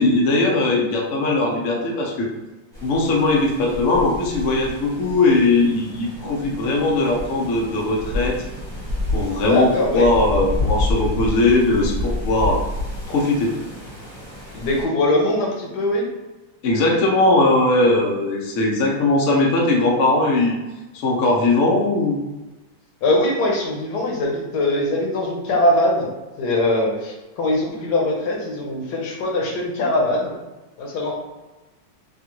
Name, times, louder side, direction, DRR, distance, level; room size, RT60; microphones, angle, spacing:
voice 1, 0.0-2.3 2.8-8.4 9.1-12.6 13.1-13.5 16.6-20.6 20.9-22.2, left 2 dB, 85° left, -2 dB, 0.6 m, -19 dB
sound 1, 2.7-14.8, left 1 dB, ahead, 0.8 m, -29 dB
voice 2, 9.3-10.1 14.5-16.1 23.0-26.1 26.4-30.3 30.8-31.2, left 1 dB, 65° left, -1 dB, 1.1 m, -21 dB
3.6 x 2.4 x 2.9 m, 1.1 s
omnidirectional pair, 2.2 m